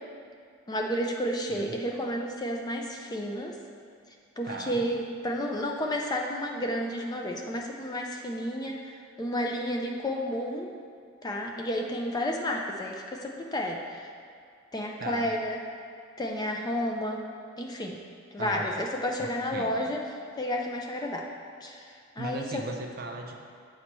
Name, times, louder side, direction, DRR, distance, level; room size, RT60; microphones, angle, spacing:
voice 1, 0.7-3.5 4.4-10.7 11.2-14.1 14.7-15.6 16.2-17.2 17.6-18.0 18.3-20.0 20.4-21.3 21.6-22.6, equal, 20° left, 1 dB, 0.4 m, -31 dB
voice 2, 4.4-4.8 15.0-15.3 18.4-18.7 19.2-19.7 22.2-23.3, right 3 dB, 45° right, 3 dB, 0.5 m, -37 dB
7.3 x 4.3 x 3.0 m, 2.2 s
head